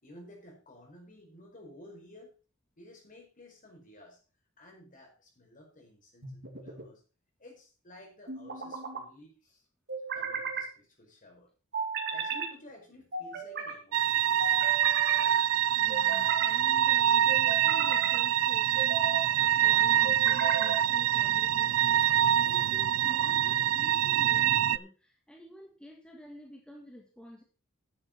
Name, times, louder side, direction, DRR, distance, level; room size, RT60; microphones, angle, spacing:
voice 1, 0.0-2.4 2.8-4.2 4.6-7.0 7.4-9.6 10.1-11.5 12.1-14.6, left 1 dB, 40° left, 0 dB, 5.1 m, -53 dB
sound 1, 6.2-6.9 8.3-9.0 9.9-10.7 11.7-12.5 13.1-13.8 14.4-15.2 15.9-16.6 17.3-18.2 18.8-19.3 20.0-20.9, right 5 dB, 50° right, 2.6 m, -35 dB
sound 2, 13.9-24.8, right 11 dB, 80° right, 0.4 m, -25 dB
voice 2, 15.8-27.4, equal, 5° left, 0 dB, 1.7 m, -49 dB
10.5 x 7.8 x 5.7 m, 0.35 s
head